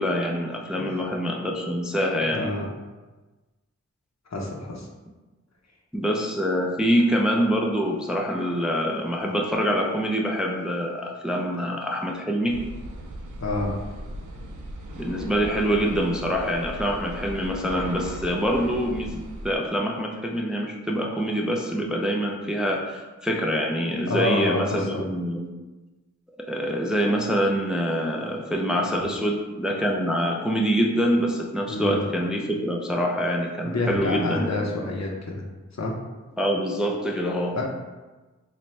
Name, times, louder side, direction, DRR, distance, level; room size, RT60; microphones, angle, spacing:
voice 1, 0.0-2.5 5.9-12.6 14.9-25.5 26.4-34.7 36.4-37.6, equal, 5° right, 0 dB, 0.4 m, -25 dB
voice 2, 2.3-2.6 4.3-4.9 13.4-13.7 24.1-25.1 31.7-32.1 33.6-35.4 35.7-35.9 37.6-37.7, left 2 dB, 65° left, -1 dB, 0.7 m, -27 dB
sound 1, 12.5-19.6, right 1 dB, 80° right, 0.5 m, -37 dB
4.1 x 2.2 x 3.1 m, 1.2 s
wide cardioid pair, 60°, 30 cm